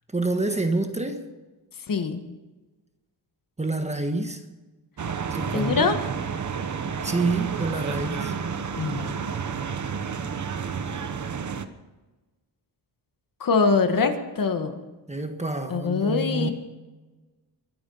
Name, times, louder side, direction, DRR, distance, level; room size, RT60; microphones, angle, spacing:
voice 1, 0.1-1.3 3.6-4.4 5.3-5.9 7.0-8.3 15.1-16.5, right 2 dB, 15° right, 1.4 m, -27 dB
voice 2, 1.9-2.2 5.5-6.0 8.7-9.2 13.4-14.7 15.7-16.5, left 4 dB, 45° left, 1.7 m, -23 dB
sound 1, 5.0-11.7, right 6 dB, 40° right, 1.1 m, -30 dB
23.5 x 9.0 x 5.7 m
wide cardioid pair, 140°, 45 cm